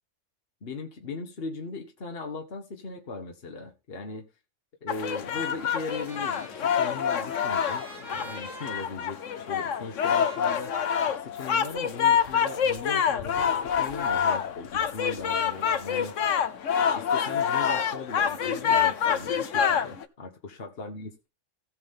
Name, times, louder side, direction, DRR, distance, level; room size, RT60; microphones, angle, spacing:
voice 1, 0.6-4.3 4.8-10.7 11.1-16.1 16.8-21.3, left 3 dB, 50° left, 1.4 m, -38 dB
sound 1, 4.9-20.0, left 7 dB, 80° left, 1.3 m, -26 dB
Trumpet, 5.6-11.8, right 1 dB, 55° right, 3.9 m, -47 dB
17.0 x 6.1 x 3.6 m
omnidirectional pair, 1.3 m